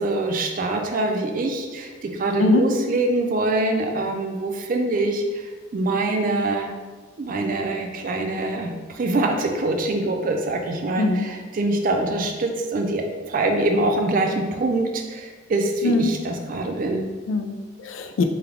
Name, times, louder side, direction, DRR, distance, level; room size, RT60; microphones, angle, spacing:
voice 1, 0.0-6.7 7.2-17.1, right 2 dB, 45° right, 4 dB, 0.4 m, -24 dB
voice 2, 17.3-18.2, left 2 dB, 90° left, 6 dB, 0.4 m, -21 dB
3.4 x 2.3 x 3.5 m, 1.3 s
head